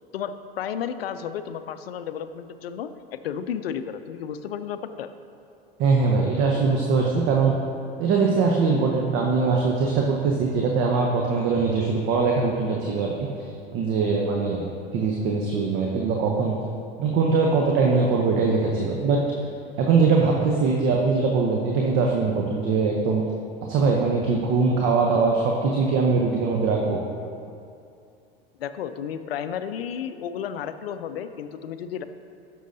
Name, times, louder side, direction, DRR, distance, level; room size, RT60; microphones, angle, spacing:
voice 1, 0.1-5.1 28.6-32.0, left 8 dB, 80° left, 11 dB, 0.5 m, -32 dB
voice 2, 5.8-7.5 8.0-13.3 13.7-14.6 14.9-16.6 17.0-19.2 19.8-23.2 23.7-27.0, right 4 dB, 45° right, 0 dB, 0.8 m, -22 dB
11.0 x 6.4 x 2.7 m, 2.5 s
hypercardioid pair, 85°, 29 cm